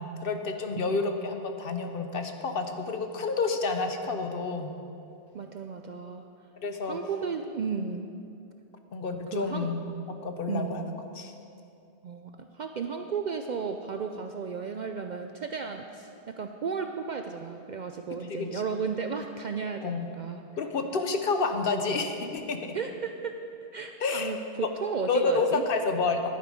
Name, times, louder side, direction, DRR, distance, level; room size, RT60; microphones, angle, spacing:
voice 1, 0.0-4.7 6.6-7.0 8.9-9.8 10.1-10.9 11.2-11.3 18.3-18.6 19.8-20.1 20.6-22.8 24.0-24.3 24.6-24.7 25.1-26.3, left 4 dB, 60° left, 6 dB, 0.9 m, -29 dB
voice 2, 5.3-6.2 6.9-8.1 9.3-9.7 10.5-10.9 12.0-16.1 16.4-20.4 22.7-23.3 23.7-25.6, right 5 dB, 60° right, 5 dB, 0.5 m, -34 dB
11.5 x 9.1 x 5.0 m, 2.6 s
omnidirectional pair, 1.1 m